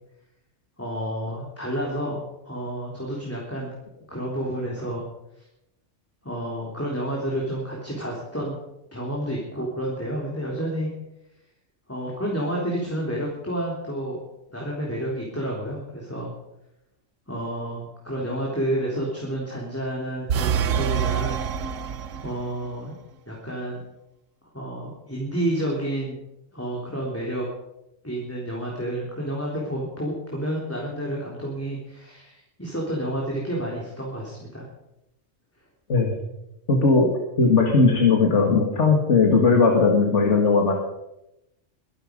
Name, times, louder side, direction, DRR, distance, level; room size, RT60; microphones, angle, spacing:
voice 1, 0.8-3.7 4.1-5.1 6.2-8.6 8.9-10.9 11.9-14.2 14.5-16.3 17.3-21.4 22.2-22.9 23.3-23.8 24.5-26.2 26.5-27.5 28.0-34.6, right 1 dB, 10° left, -3 dB, 3.5 m, -30 dB
sound 1, 20.3-22.6, right 8 dB, 90° right, 1.2 m, -26 dB
voice 2, 36.7-40.7, left 4 dB, 70° left, 2 dB, 2.3 m, -18 dB
22.5 x 11.5 x 5.3 m, 0.88 s
omnidirectional pair, 1.3 m